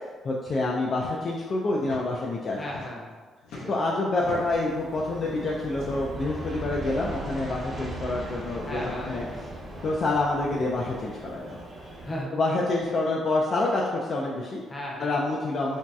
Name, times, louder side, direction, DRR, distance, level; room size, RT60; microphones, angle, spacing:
voice 1, 0.2-2.6 3.7-9.3 9.8-11.6 12.3-14.6 15.0-15.8, left 2 dB, 50° left, -3 dB, 0.3 m, -27 dB
sound 1, 1.7-2.0 2.3-3.2 3.4-4.7 5.7-6.2 7.2-7.3 7.7-7.8 8.7-8.9 10.1-10.2 11.4-11.7 12.7-13.0, left 3 dB, 85° left, 0.6 m, -44 dB
voice 2, 2.5-3.2 3.5-3.7 4.3-4.6 8.6-9.5 12.0-12.3 14.7-15.2, equal, 25° left, -3 dB, 0.7 m, -36 dB
Aircraft, 4.2-12.2, right 1 dB, 35° right, 0.8 m, -38 dB
3.0 x 2.6 x 2.3 m, 1.5 s
cardioid pair, 90°, 0 cm